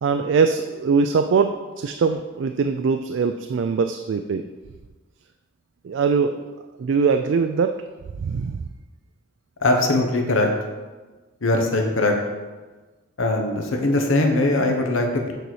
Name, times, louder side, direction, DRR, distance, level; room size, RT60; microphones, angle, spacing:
voice 1, 0.0-4.5 5.8-6.4 6.8-7.8 8.2-8.6, right 5 dB, 70° right, 7 dB, 0.3 m, -22 dB
voice 2, 9.6-10.5 11.4-12.1 13.2-15.3, left 2 dB, 85° left, 3 dB, 1.0 m, -21 dB
6.8 x 4.1 x 6.3 m, 1.3 s
head